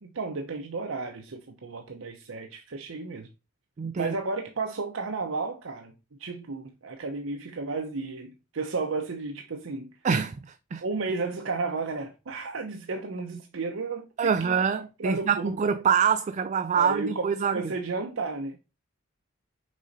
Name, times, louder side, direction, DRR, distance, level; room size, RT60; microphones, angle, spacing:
voice 1, 0.0-3.3 4.0-5.9 6.2-9.9 10.8-14.5 15.0-15.5 16.7-18.6, right 3 dB, 90° right, 0.8 m, -33 dB
voice 2, 3.8-4.1 10.0-10.3 10.7-10.8 14.2-17.7, right 6 dB, 40° right, 0.4 m, -25 dB
6.2 x 4.2 x 4.0 m
head